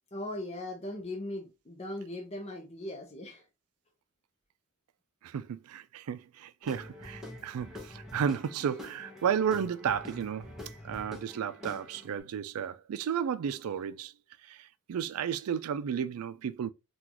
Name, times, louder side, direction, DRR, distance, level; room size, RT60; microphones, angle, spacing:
voice 1, 0.1-3.4, left 1 dB, 30° left, 0.7 m, -39 dB
voice 2, 5.2-10.5 10.8-14.1 14.4-16.7, right 8 dB, 80° right, 0.3 m, -33 dB
Guitar / Drum, 6.6-12.2, left 1 dB, ahead, 0.9 m, -46 dB
3.8 x 2.3 x 2.9 m
head